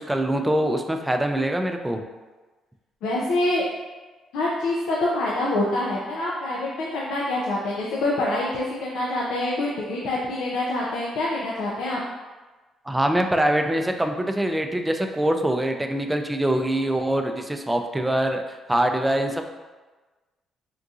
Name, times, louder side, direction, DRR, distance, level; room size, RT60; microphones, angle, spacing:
voice 1, 0.0-2.0 12.9-19.5, right 1 dB, 10° right, 5 dB, 0.3 m, -24 dB
voice 2, 3.0-3.6 4.3-12.0, left 2 dB, 90° left, -5 dB, 0.4 m, -26 dB
3.7 x 2.6 x 2.4 m, 1.2 s
cardioid pair, 90°, 0 cm